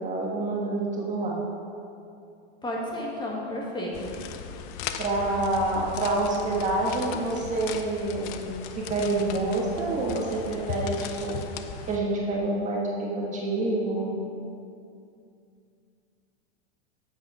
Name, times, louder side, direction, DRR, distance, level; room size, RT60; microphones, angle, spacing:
voice 1, 0.0-1.4 5.0-11.4 11.9-14.1, right 2 dB, 20° right, -3 dB, 1.5 m, -27 dB
voice 2, 2.6-4.1, left 1 dB, 15° left, -3 dB, 1.6 m, -32 dB
sound 1, 3.9-12.0, left 7 dB, 45° left, 0.7 m, -37 dB
8.5 x 8.2 x 4.9 m, 2.5 s
supercardioid pair, 130°, 33 cm